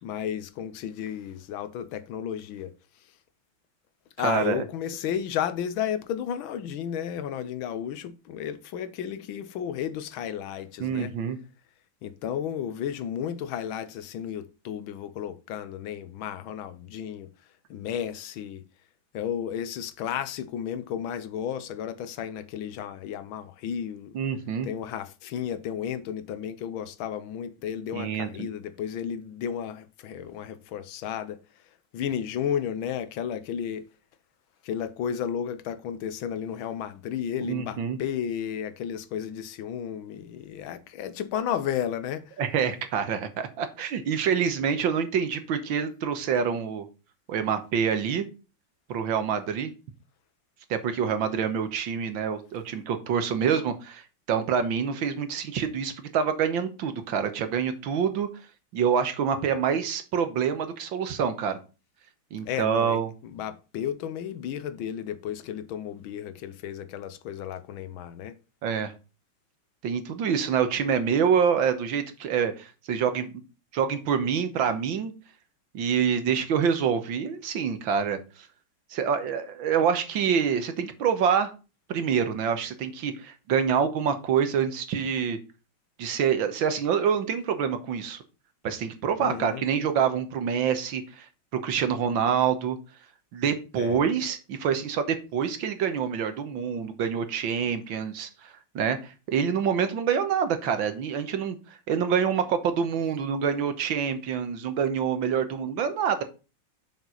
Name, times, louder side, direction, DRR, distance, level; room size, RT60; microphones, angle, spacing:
voice 1, 0.0-2.7 4.2-11.1 12.0-17.3 17.7-18.6 19.1-24.1 24.6-31.4 31.9-33.9 34.6-42.4 62.5-63.0 63.2-68.3 89.2-89.6 93.8-94.1, left 9 dB, 80° left, 1.6 m, -33 dB
voice 2, 4.2-4.6 10.8-11.4 24.1-24.7 27.9-28.5 37.4-38.0 42.4-46.8 47.3-48.3 48.9-49.7 50.7-58.3 58.7-61.6 62.3-63.1 68.6-68.9 69.8-73.3 73.7-75.1 75.7-78.2 78.9-81.5 81.9-85.4 86.0-88.2 88.6-91.3 91.5-92.8 93.3-101.6 101.9-106.2, right 7 dB, 75° right, 1.8 m, -26 dB
7.1 x 6.1 x 3.9 m
omnidirectional pair, 2.2 m